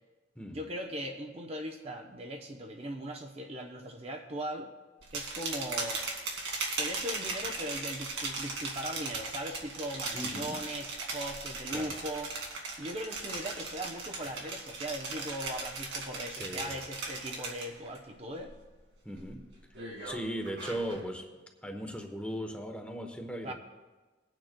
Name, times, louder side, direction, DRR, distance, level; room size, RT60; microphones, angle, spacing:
voice 1, 0.5-4.7 5.1-6.1 6.8-12.3 12.8-18.5 23.4-23.5, equal, 35° right, 3 dB, 0.7 m, -39 dB
sound 1, 5.0-18.0 18.3-18.7 19.2-21.0, right 3 dB, 85° right, 2.2 m, -38 dB
voice 2, 10.1-10.6 11.7-12.0 16.4-16.8 19.0-19.5 20.0-21.2 21.6-23.5, equal, 5° left, 4 dB, 0.9 m, -38 dB
22.0 x 9.0 x 2.2 m, 1.2 s
head